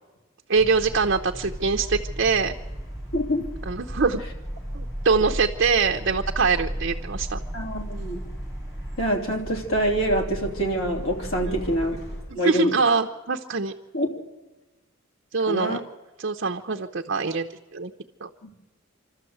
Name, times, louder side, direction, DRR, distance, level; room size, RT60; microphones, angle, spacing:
sound 1, 0.5-12.2, equal, 15° left, 7.0 m, -35 dB
voice 1, 0.5-2.5 3.7-4.2 4.7-7.4 11.5-11.6 12.4-13.7 15.3-15.8 16.2-17.9 18.2-18.3, right 4 dB, 55° right, 3 dB, 0.8 m, -23 dB
voice 2, 3.1-3.5 7.5-8.2 9.0-12.0 12.3-12.8 13.9-14.2 15.5-15.8 18.4-18.5, right 1 dB, 90° left, 2 dB, 3.1 m, -25 dB
26.5 x 13.0 x 7.9 m, 1.2 s
head